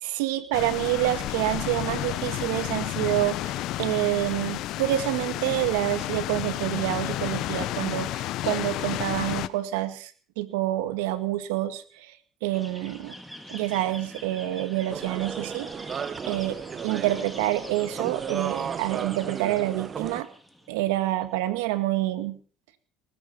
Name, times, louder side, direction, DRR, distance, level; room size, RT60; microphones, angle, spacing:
voice 1, 0.0-10.1 10.4-12.2 12.4-13.1 13.5-15.7 16.3-20.3 20.7-22.4, right 15 dB, 90° right, 11 dB, 1.9 m, -27 dB
sound 1, 0.5-9.5, left 15 dB, 70° left, 1.0 m, -31 dB
sound 2, 12.5-21.3, equal, ahead, 3.8 m, -45 dB
sound 3, 14.9-20.2, right 7 dB, 40° right, 1.0 m, -34 dB
20.0 x 13.0 x 5.5 m, 0.41 s
supercardioid pair, 90°, 0 cm